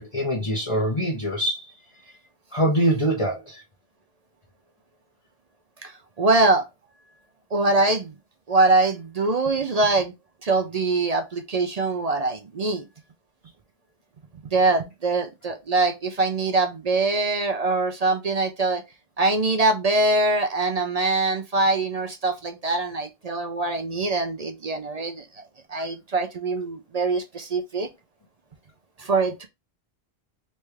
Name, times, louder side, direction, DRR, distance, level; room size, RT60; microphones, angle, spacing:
voice 1, 0.0-1.7 2.5-3.6, equal, 30° left, 0.9 m, -24 dB
voice 2, 5.8-6.7 7.5-8.1 8.5-10.1 10.4-12.8 14.5-18.8 19.2-25.4 25.7-27.9 29.0-29.5, right 3 dB, 50° right, 0.5 m, -23 dB
3.3 x 3.2 x 3.3 m
omnidirectional pair, 1.1 m